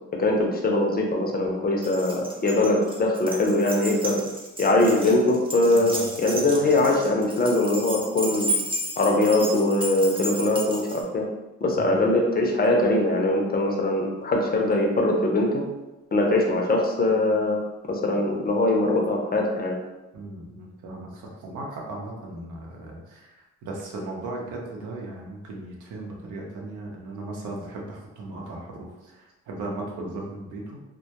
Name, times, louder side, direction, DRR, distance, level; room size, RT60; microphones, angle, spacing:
voice 1, 0.1-4.2 4.6-8.5 9.0-11.3 11.6-15.6 16.1-17.6 17.9-19.8, left 2 dB, 30° left, 0 dB, 0.5 m, -22 dB
Keys jangling, 1.8-11.0, right 1 dB, 15° right, 0.5 m, -33 dB
voice 2, 20.1-23.3 23.6-30.8, right 2 dB, 80° right, -1 dB, 0.7 m, -37 dB
2.2 x 2.1 x 2.8 m, 1.0 s
cardioid pair, 90°, 30 cm